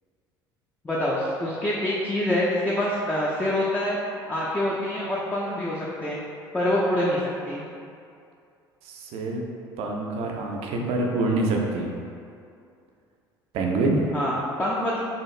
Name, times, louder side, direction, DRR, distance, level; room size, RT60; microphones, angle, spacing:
voice 1, 0.8-4.0 4.3-6.2 6.5-7.6 14.1-15.0, left 1 dB, 15° left, -6 dB, 0.4 m, -26 dB
voice 2, 8.8-9.4 9.8-11.9 13.5-14.2, right 2 dB, 60° right, 0 dB, 0.5 m, -26 dB
2.7 x 2.3 x 3.1 m, 2.4 s
hypercardioid pair, 60°, 12 cm